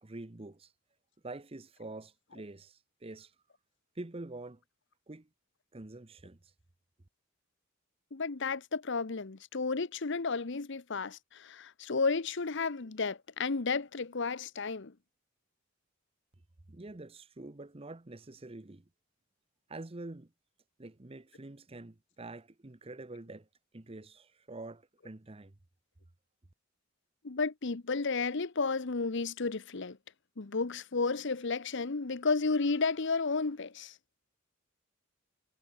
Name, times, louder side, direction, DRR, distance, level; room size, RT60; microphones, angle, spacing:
voice 1, 0.0-0.7 1.2-3.3 3.9-4.6 5.1-5.3 5.7-6.5 16.7-18.9 19.7-20.3 20.8-23.5 23.7-25.6, right 2 dB, 25° right, 0.8 m, -46 dB
voice 2, 8.1-14.9 27.2-30.0 30.4-34.0, left 4 dB, 55° left, 0.9 m, -32 dB
head